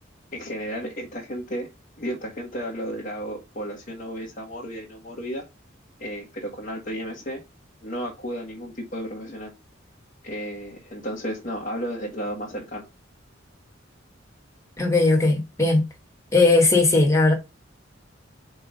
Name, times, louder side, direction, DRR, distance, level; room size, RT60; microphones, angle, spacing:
voice 1, 0.3-1.7 2.0-5.4 6.0-7.4 7.8-9.5 10.2-12.9, equal, 40° left, 1.6 m, -33 dB
voice 2, 14.8-15.8 16.3-17.3, left 3 dB, 15° left, 2.0 m, -18 dB
5.2 x 3.5 x 5.5 m
head